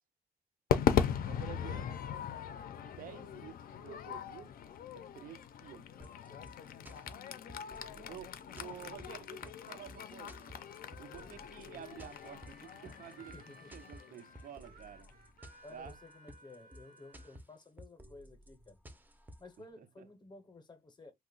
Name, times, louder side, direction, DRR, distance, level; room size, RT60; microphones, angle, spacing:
Crowd / Fireworks, 0.7-15.1, left 8 dB, 75° left, 0.4 m, -38 dB
voice 1, 1.3-1.9 2.8-4.5 4.9-5.9 6.2-6.4 8.0-10.4 11.0-13.4 13.7-15.1 15.7-16.0 19.8-20.1, right 10 dB, 65° right, 0.4 m, -50 dB
sound 1, 6.0-19.6, equal, 10° right, 0.4 m, -54 dB
voice 2, 6.2-7.0 11.2-11.4 13.2-13.8 15.6-18.8 19.4-21.1, left 2 dB, 30° left, 0.6 m, -55 dB
Harmonica, 10.8-17.4, right 2 dB, 90° right, 0.9 m, -60 dB
2.8 x 2.1 x 3.7 m
wide cardioid pair, 170°, 15 cm